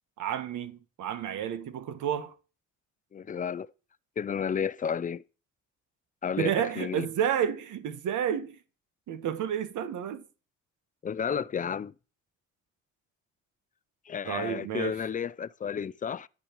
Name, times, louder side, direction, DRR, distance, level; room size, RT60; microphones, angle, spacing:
voice 1, 0.2-2.3 6.4-8.6 9.1-10.2 14.3-15.0, right 9 dB, 75° right, 1.3 m, -30 dB
voice 2, 3.1-3.7 4.2-5.2 6.2-7.1 11.0-11.9 14.1-16.3, left 7 dB, 25° left, 0.5 m, -32 dB
9.9 x 8.8 x 3.0 m
cardioid pair, 90°, 30 cm